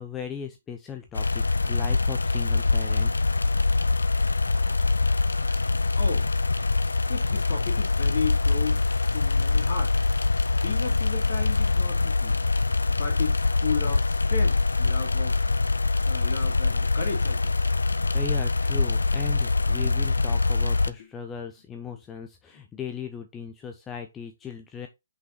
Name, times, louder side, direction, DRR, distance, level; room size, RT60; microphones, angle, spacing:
voice 1, 0.0-3.1 18.1-24.9, left 7 dB, 15° left, 0.7 m, -37 dB
sound 1, 1.2-20.9, left 3 dB, 70° left, 0.6 m, -24 dB
voice 2, 7.1-10.0 10.5-12.4 12.9-15.4 16.1-17.5 21.0-21.1, left 5 dB, 45° left, 2.6 m, -34 dB
6.2 x 5.4 x 4.1 m
figure-of-eight pair, 130°, 0 cm